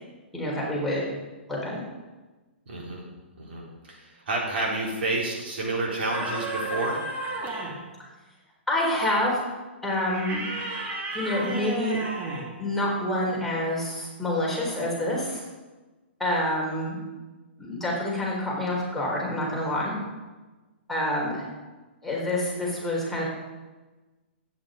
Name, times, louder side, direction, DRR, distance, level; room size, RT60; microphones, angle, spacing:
voice 1, 0.3-1.0 1.5-1.8 8.7-9.5 9.8-10.4 11.1-12.0 12.6-15.4 16.2-17.0 17.6-20.0 20.9-21.5 22.0-23.2, left 1 dB, 5° left, -5 dB, 3.9 m, -27 dB
voice 2, 2.7-3.0 3.4-7.0, right 2 dB, 60° right, -2 dB, 3.9 m, -30 dB
sound 1, 6.1-7.9 10.1-12.6, right 2 dB, 25° right, 2.3 m, -32 dB
11.5 x 9.4 x 5.1 m, 1.2 s
hypercardioid pair, 120°, 6 cm